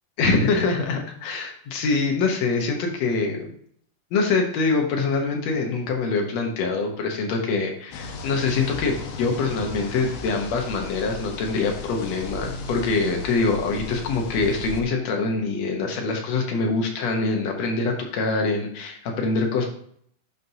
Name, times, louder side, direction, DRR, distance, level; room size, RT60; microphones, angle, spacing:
voice 1, 0.2-3.5 4.1-19.7, left 3 dB, 65° left, 2 dB, 2.0 m, -24 dB
sound 1, 7.9-14.8, left 4 dB, 80° left, 2.6 m, -35 dB
11.0 x 5.2 x 2.8 m, 0.63 s
omnidirectional pair, 3.9 m